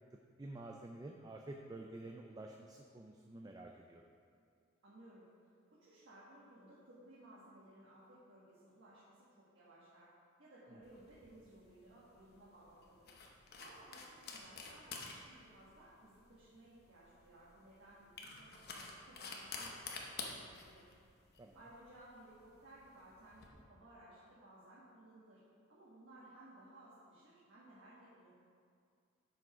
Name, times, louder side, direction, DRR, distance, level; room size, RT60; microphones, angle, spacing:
voice 1, 0.4-4.1 10.7-10.8 21.4-21.6, right 2 dB, 20° right, 2 dB, 0.3 m, -50 dB
voice 2, 4.8-5.2 5.7-10.1 10.4-13.2 13.6-20.9 21.5-25.4 25.7-28.3, right 1 dB, 60° right, -9 dB, 1.6 m, -59 dB
sound 1, 10.8-23.5, left 4 dB, 50° left, 0.9 m, -50 dB
7.3 x 6.0 x 5.0 m, 2.3 s
head